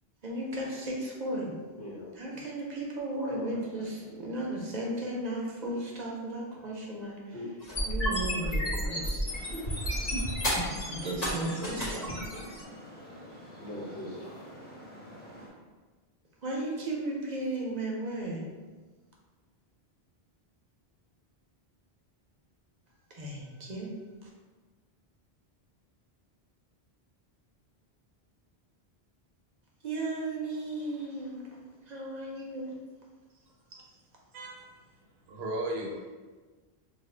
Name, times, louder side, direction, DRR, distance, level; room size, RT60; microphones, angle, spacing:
voice 1, 0.2-1.5 2.2-7.3 7.8-9.2 10.9-12.2 16.4-18.5 23.1-23.9 24.2-24.3 29.8-31.4 31.9-32.8 33.7-33.8, right 1 dB, 50° right, -2 dB, 0.6 m, -35 dB
voice 2, 1.8-2.1 3.3-4.2 7.3-9.1 13.6-14.4, left 1 dB, 80° left, -5 dB, 1.3 m, -43 dB
sound 1, 7.6-12.6, equal, 40° left, 1.1 m, -31 dB
Traffic noise roadway noise, 9.2-15.5, equal, 10° left, 0.5 m, -48 dB
voice 3, 34.3-36.1, right 1 dB, 80° right, -1 dB, 0.9 m, -37 dB
2.7 x 2.4 x 4.2 m, 1.3 s
omnidirectional pair, 1.1 m